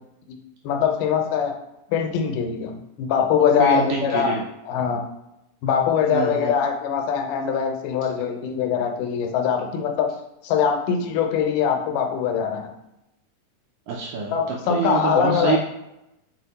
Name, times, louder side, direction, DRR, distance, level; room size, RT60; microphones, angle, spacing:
voice 1, 0.6-1.5 1.9-4.4 4.7-5.1 5.6-10.1 10.4-12.7 14.3-15.6, left 7 dB, 85° left, 4 dB, 2.3 m, -22 dB
voice 2, 3.6-4.4 6.1-6.6 13.9-15.6, right 6 dB, 80° right, -2 dB, 1.8 m, -26 dB
6.1 x 2.1 x 4.0 m, 0.88 s
omnidirectional pair, 3.7 m